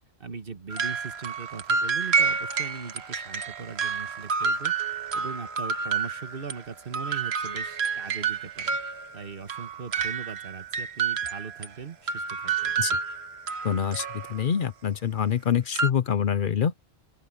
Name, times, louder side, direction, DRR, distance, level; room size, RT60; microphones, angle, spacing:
voice 1, 0.2-4.7 5.1-8.8 9.1-12.8, right 5 dB, 60° right, 1.6 m, -40 dB
sound 1, 0.7-6.6 6.9-11.7 12.1-14.6 15.8-15.9, right 5 dB, 80° right, 1.4 m, -29 dB
voice 2, 13.6-16.7, left 8 dB, 55° left, 0.8 m, -26 dB
open air
omnidirectional pair, 1.1 m